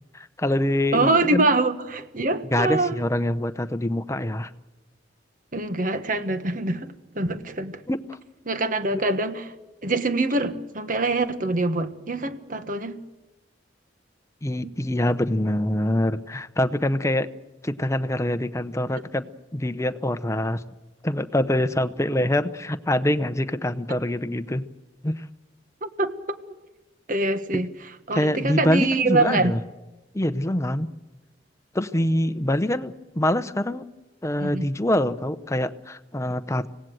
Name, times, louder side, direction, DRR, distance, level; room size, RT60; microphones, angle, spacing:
voice 1, 0.1-1.4 2.5-4.5 7.9-8.2 8.9-9.0 14.4-17.3 17.6-19.3 19.5-20.6 21.0-24.6 25.0-25.2 28.1-29.6 30.1-30.9 31.7-33.8 34.2-36.7, left 1 dB, 15° left, 11 dB, 0.8 m, -25 dB
voice 2, 0.9-3.0 5.5-7.8 8.4-9.5 9.8-13.0 14.6-14.7 25.8-26.4 27.1-29.5 34.4-34.7, right 2 dB, 45° right, 10 dB, 1.4 m, -25 dB
25.5 x 18.0 x 7.7 m, 1.1 s
head